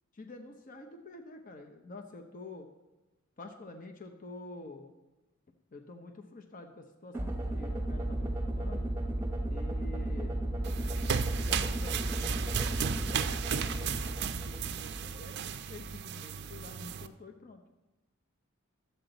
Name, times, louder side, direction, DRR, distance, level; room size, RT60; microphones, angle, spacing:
voice 1, 0.1-2.7 3.4-4.9 5.7-8.9 9.5-10.4 11.4-15.3 15.7-17.6, left 2 dB, 40° left, 5 dB, 0.7 m, -48 dB
sound 1, 7.1-15.3, right 1 dB, 10° right, 0.9 m, -34 dB
sound 2, 10.6-17.1, right 7 dB, 55° right, 0.4 m, -35 dB
12.5 x 7.8 x 3.9 m, 1.0 s
head